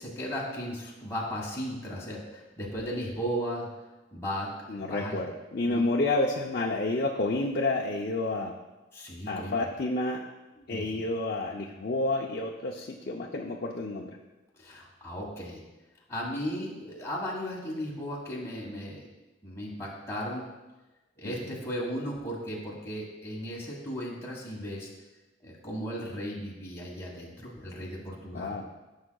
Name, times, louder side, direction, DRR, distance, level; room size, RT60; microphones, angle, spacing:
voice 1, 0.0-3.7 4.1-5.2 5.6-5.8 8.9-9.6 10.6-11.0 14.6-15.6 16.1-19.1 19.4-20.5 21.2-24.9 25.4-28.6, equal, 15° left, -5 dB, 1.6 m, -36 dB
voice 2, 4.7-8.5 9.3-10.2 10.7-14.1 21.2-21.6 28.3-28.7, left 2 dB, 50° left, -2 dB, 0.6 m, -30 dB
14.5 x 6.4 x 2.3 m, 1.1 s
head